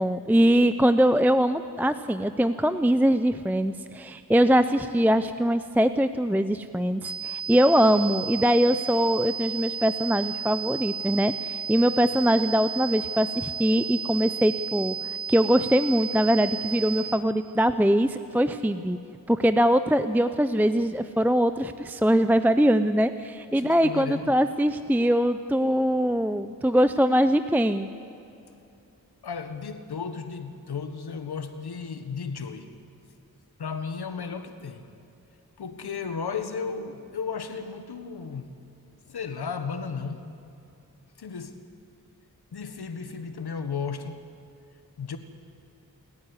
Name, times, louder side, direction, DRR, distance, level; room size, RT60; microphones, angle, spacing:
voice 1, 0.0-15.0 15.3-19.0 19.3-27.9, equal, 5° right, 0.6 m, -22 dB
sound 1, 7.0-17.0, right 6 dB, 75° right, 3.7 m, -33 dB
voice 2, 23.5-24.3 29.2-32.7 33.6-34.9 35.6-38.5 39.0-40.3 41.2-41.6 42.5-44.3 45.0-45.2, left 5 dB, 85° left, 1.5 m, -34 dB
28.5 x 9.6 x 9.8 m
cardioid pair, 60°, 38 cm